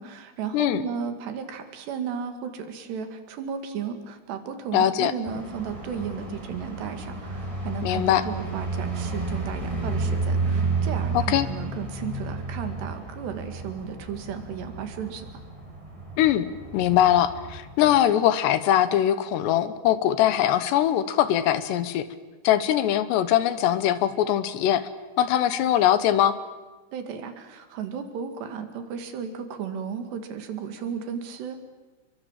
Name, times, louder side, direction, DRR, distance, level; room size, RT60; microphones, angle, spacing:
voice 1, 0.0-15.3 26.9-31.6, right 7 dB, 65° right, 7 dB, 4.1 m, -34 dB
voice 2, 4.7-5.1 7.8-8.2 11.1-11.5 16.2-22.1 22.4-24.9 25.2-26.4, left 11 dB, 75° left, 13 dB, 3.0 m, -22 dB
sound 1, 5.2-18.0, right 3 dB, 5° right, 4.7 m, -31 dB
30.0 x 24.0 x 7.5 m, 1.2 s
omnidirectional pair, 5.5 m